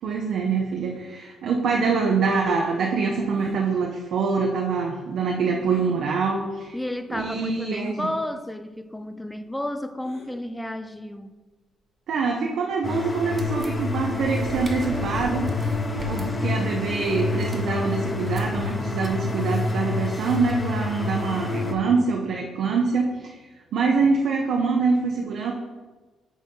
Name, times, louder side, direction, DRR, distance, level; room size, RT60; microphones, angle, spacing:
voice 1, 0.0-6.7 7.1-8.1 12.1-15.7 16.1-23.4 23.7-25.5, right 4 dB, 70° right, 0 dB, 0.7 m, -25 dB
sound 1, 3.3-3.6 5.7-6.0 6.7-6.8 7.7-8.0 10.0-10.3 11.4-11.5 12.9-13.2 14.2-14.3 14.6-14.7 15.9-16.2 17.9-18.2, left 1 dB, 75° left, 2.0 m, -46 dB
voice 2, 6.7-11.3, left 1 dB, 5° left, 10 dB, 0.4 m, -32 dB
sound 2, 12.8-21.7, left 3 dB, 25° left, 0.9 m, -28 dB
sound 3, 13.3-20.9, right 1 dB, 35° right, 1.2 m, -41 dB
6.2 x 3.8 x 5.4 m, 1.3 s
cardioid pair, 90°, 0 cm